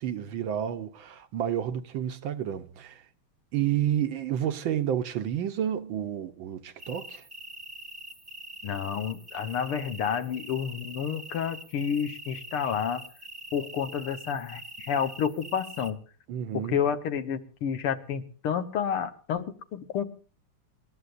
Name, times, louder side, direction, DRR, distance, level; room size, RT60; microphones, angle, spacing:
voice 1, 0.0-3.0 3.5-7.3 16.3-16.7, right 10 dB, 70° right, 1.5 m, -30 dB
sound 1, 6.8-15.9, right 1 dB, 15° right, 0.8 m, -44 dB
voice 2, 8.6-13.0 13.5-16.0 16.7-19.5 19.7-20.0, left 8 dB, 80° left, 2.1 m, -30 dB
27.5 x 13.0 x 2.5 m
omnidirectional pair, 2.4 m